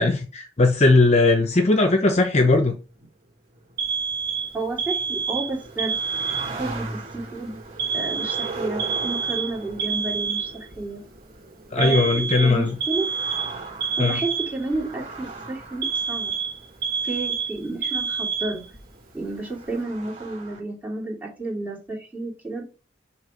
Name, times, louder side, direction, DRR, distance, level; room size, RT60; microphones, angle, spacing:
voice 1, 0.0-2.7 11.7-12.8 14.0-14.2, left 3 dB, 40° left, 0.8 m, -19 dB
sound 1, 2.9-20.6, right 3 dB, 40° right, 2.5 m, -40 dB
Alarm, 3.8-6.8 7.8-10.8 11.8-14.8 15.8-18.8, right 6 dB, 55° right, 1.8 m, -27 dB
voice 2, 4.5-6.0 6.6-7.6 7.9-11.0 11.8-13.1 14.0-16.3 17.0-18.6 19.1-22.6, right 2 dB, 10° right, 2.8 m, -31 dB
6.4 x 3.2 x 5.2 m
head